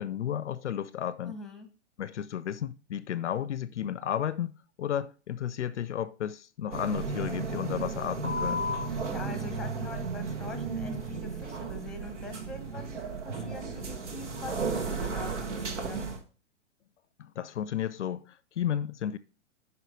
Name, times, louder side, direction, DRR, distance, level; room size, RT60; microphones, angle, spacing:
voice 1, 0.0-1.3 2.0-4.5 4.8-8.6 13.6-13.7 17.2-19.2, left 10 dB, 70° left, 0.6 m, -33 dB
voice 2, 1.2-1.7 8.9-16.1, left 2 dB, ahead, 1.1 m, -43 dB
sound 1, 6.7-16.2, right 3 dB, 70° right, 1.5 m, -34 dB
9.5 x 5.6 x 3.4 m
figure-of-eight pair, 110°, 37 cm